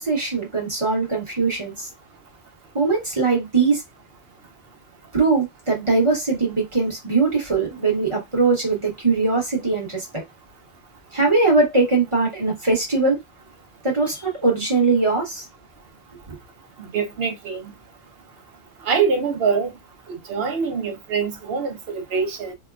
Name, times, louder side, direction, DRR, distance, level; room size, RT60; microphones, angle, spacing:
voice 1, 0.0-1.9 2.7-3.8 5.1-10.2 11.1-13.2 13.8-15.5 16.3-16.4, right 3 dB, 25° right, 1.1 m, -21 dB
voice 2, 16.8-17.7 18.9-19.7 20.1-22.5, right 5 dB, 60° right, 0.8 m, -24 dB
3.0 x 2.2 x 2.3 m
omnidirectional pair, 1.3 m